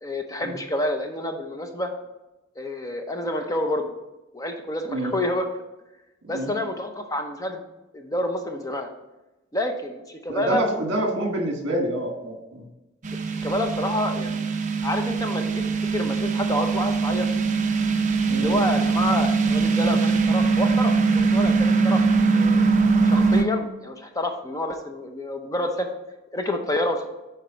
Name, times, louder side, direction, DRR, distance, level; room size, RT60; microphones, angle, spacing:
voice 1, 0.0-1.9 2.6-3.9 4.3-5.5 6.3-7.6 7.9-8.9 9.5-10.6 13.3-14.5 14.8-15.6 15.9-17.3 18.3-20.9 21.3-22.0 22.3-22.6 23.0-25.9 26.3-27.1, left 1 dB, 15° left, 5 dB, 0.6 m, -28 dB
voice 2, 10.3-12.6 18.3-18.5, right 1 dB, 60° right, 2 dB, 1.5 m, -27 dB
sound 1, 13.0-23.4, right 4 dB, 35° right, 0.6 m, -22 dB
7.5 x 4.6 x 4.0 m, 1.0 s
head